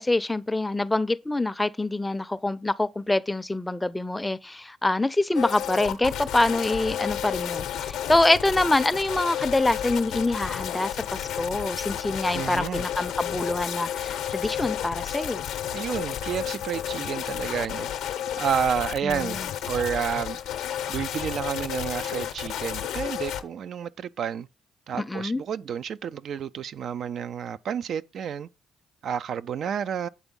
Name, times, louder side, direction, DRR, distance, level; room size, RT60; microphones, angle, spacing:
voice 1, 0.0-15.5 19.0-19.5 25.0-25.4, left 2 dB, 15° left, 0.5 m, -25 dB
sound 1, 5.3-23.4, left 10 dB, 75° left, 0.6 m, -32 dB
voice 2, 12.3-12.8 15.7-17.9 18.4-20.4 20.9-24.5 24.9-28.5 29.0-30.1, right 8 dB, 65° right, 0.3 m, -30 dB
8.1 x 3.6 x 5.2 m
hypercardioid pair, 50°, 0 cm